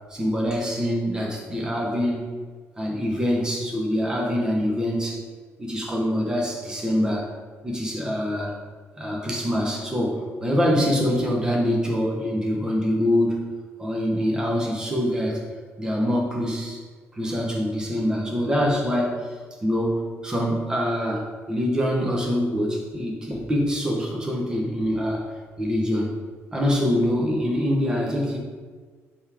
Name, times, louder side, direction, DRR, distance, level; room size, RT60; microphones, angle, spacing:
voice 1, 0.1-2.3 2.8-5.2 5.6-7.3 7.6-8.5 9.0-13.4 13.8-15.4 15.8-16.8 17.1-19.3 19.6-25.2 25.6-26.1 26.5-28.4, equal, 15° right, -2 dB, 1.0 m, -24 dB
5.3 x 3.6 x 5.0 m, 1.5 s
cardioid pair, 160°, 5 cm